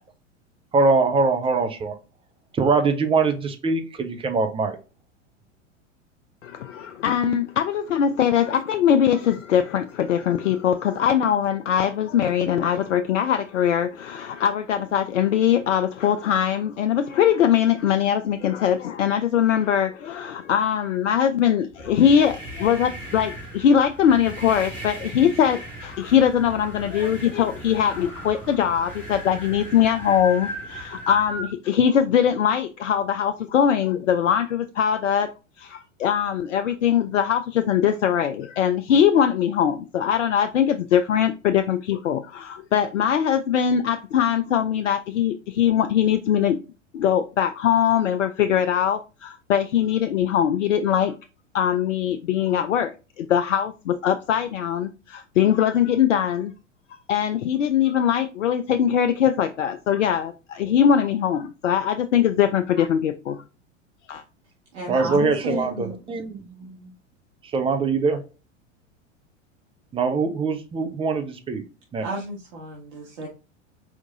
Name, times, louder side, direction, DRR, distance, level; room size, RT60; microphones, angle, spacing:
voice 1, 0.7-1.9 2.6-4.8 64.9-66.5 67.5-68.2 69.9-71.6 71.9-72.0, right 4 dB, 15° right, 0.6 m, -22 dB
voice 2, 6.4-35.3 35.6-46.6 46.9-51.1 51.5-56.5 57.1-63.4 64.1-64.2, left 9 dB, 70° left, 0.5 m, -21 dB
sound 1, 21.7-31.5, right 1 dB, 5° left, 2.3 m, -37 dB
voice 3, 64.7-66.9 72.0-73.3, right 1 dB, 60° right, 1.5 m, -33 dB
4.6 x 3.6 x 2.6 m
figure-of-eight pair, 90°, 38 cm